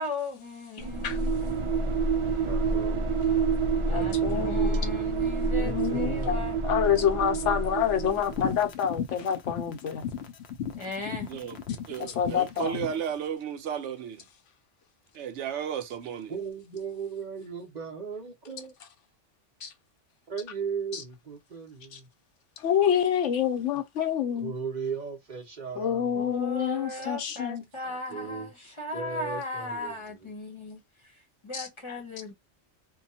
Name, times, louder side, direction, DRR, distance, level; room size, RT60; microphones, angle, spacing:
voice 1, 0.0-1.3 3.9-6.7 10.7-11.3 26.1-32.3, left 2 dB, 30° left, 0.9 m, -37 dB
sound 1, 0.8-8.6, right 4 dB, 60° right, 0.3 m, -27 dB
voice 2, 2.4-3.2 3.9-4.6 5.5-6.5 16.3-18.7 20.3-22.1 24.3-26.3 28.1-28.5 28.9-30.3, right 5 dB, 45° right, 0.9 m, -37 dB
voice 3, 3.9-4.8 5.6-10.0 12.0-12.8 19.6-19.7 20.9-21.0 21.9-22.0 22.6-24.5 25.8-27.6 31.5-31.7, left 9 dB, 90° left, 1.1 m, -27 dB
sound 2, 8.2-13.0, left 9 dB, 65° left, 0.8 m, -36 dB
voice 4, 11.3-14.2 15.1-16.3 27.8-28.0, right 8 dB, 75° right, 0.9 m, -34 dB
2.8 x 2.2 x 2.7 m
omnidirectional pair, 1.2 m